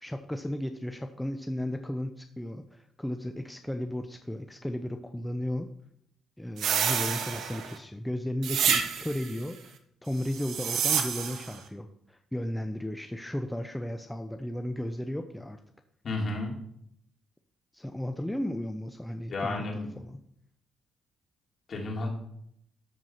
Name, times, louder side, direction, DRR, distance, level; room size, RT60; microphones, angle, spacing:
voice 1, 0.0-5.7 6.4-9.8 10.0-15.6 17.7-20.2, left 1 dB, 5° left, 6 dB, 0.7 m, -34 dB
sound 1, 6.6-7.8 8.4-9.3 10.3-11.5, right 7 dB, 75° right, 1.3 m, -28 dB
voice 2, 16.0-16.6 19.3-19.9 21.7-22.1, left 2 dB, 50° left, 0 dB, 3.1 m, -32 dB
13.0 x 4.7 x 5.7 m, 0.71 s
cardioid pair, 90°, 0 cm